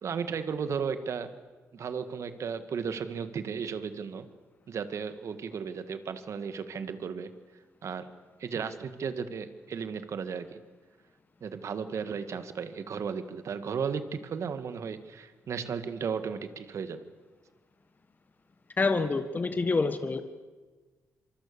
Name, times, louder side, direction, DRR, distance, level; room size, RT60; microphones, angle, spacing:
voice 1, 0.0-1.3 1.7-4.3 4.7-7.3 7.8-8.1 8.4-10.6 11.4-17.0, right 6 dB, 60° right, 10 dB, 1.9 m, -35 dB
voice 2, 18.8-20.2, left 3 dB, 30° left, 9 dB, 1.4 m, -27 dB
26.5 x 24.5 x 6.9 m, 1.3 s
cardioid pair, 75°, 6 cm